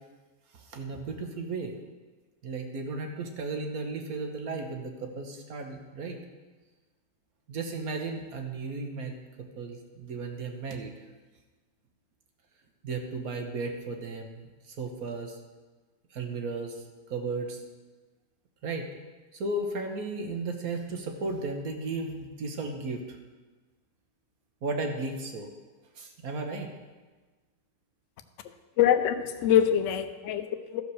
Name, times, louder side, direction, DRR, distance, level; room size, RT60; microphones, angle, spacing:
voice 1, 0.5-1.7 2.4-6.2 7.5-10.9 12.8-15.4 16.1-16.8 17.1-17.6 18.6-18.9 19.3-23.2 24.6-25.5 26.0-26.7, right 3 dB, 55° right, 4 dB, 1.4 m, -35 dB
voice 2, 28.8-30.8, left 10 dB, 70° left, 8 dB, 0.7 m, -24 dB
13.5 x 5.2 x 6.4 m, 1.3 s
omnidirectional pair, 2.0 m